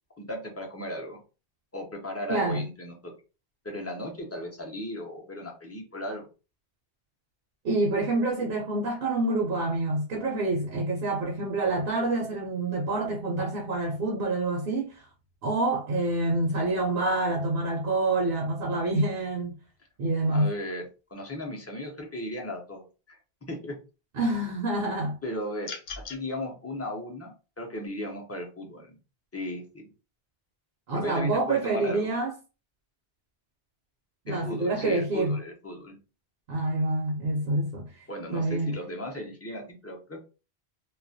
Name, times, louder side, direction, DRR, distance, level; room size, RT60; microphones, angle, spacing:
voice 1, 0.2-1.2 1.7-3.1 3.6-6.3 20.3-23.8 25.2-29.0 29.3-29.9 30.9-32.1 34.3-36.0 38.1-40.2, left 1 dB, 25° left, 0.4 m, -36 dB
voice 2, 2.3-2.6 7.6-15.1 15.4-19.6 20.0-20.5 24.1-25.2 30.9-32.3 34.3-35.4 36.5-38.0 38.3-38.8, right 2 dB, 65° right, 0.7 m, -27 dB
sound 1, 25.6-26.2, left 5 dB, 70° left, 0.8 m, -38 dB
2.3 x 2.1 x 2.6 m
omnidirectional pair, 1.1 m